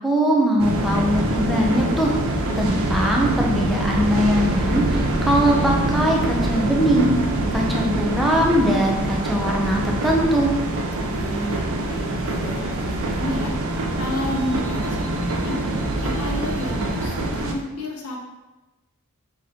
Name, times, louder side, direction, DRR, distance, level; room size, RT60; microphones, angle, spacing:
voice 1, 0.0-2.2 2.6-7.2 7.5-10.5, equal, ahead, -2 dB, 0.5 m, -21 dB
sound 1, 0.6-17.5, right 2 dB, 60° right, 0.5 m, -24 dB
voice 2, 11.0-15.7 16.0-18.2, left 1 dB, 85° left, 0 dB, 0.8 m, -31 dB
4.0 x 2.9 x 3.5 m, 1.1 s
head